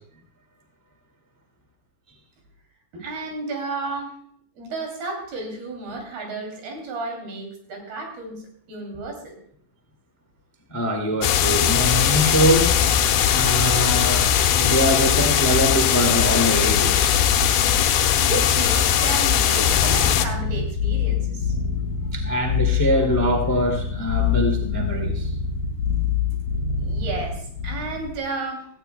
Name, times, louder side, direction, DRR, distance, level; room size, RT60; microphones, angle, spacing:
voice 1, 2.9-4.2 4.6-9.4 18.2-21.5 26.8-28.7, right 3 dB, 85° right, 2 dB, 4.9 m, -32 dB
voice 2, 10.7-12.7 13.3-14.3 14.5-17.2 22.1-25.3, right 1 dB, 10° left, 3 dB, 0.8 m, -23 dB
sound 1, 11.2-20.3, left 9 dB, 85° left, 2.7 m, -19 dB
sound 2, 19.7-28.1, left 7 dB, 45° left, 3.8 m, -25 dB
17.5 x 15.0 x 2.3 m, 0.64 s
omnidirectional pair, 4.3 m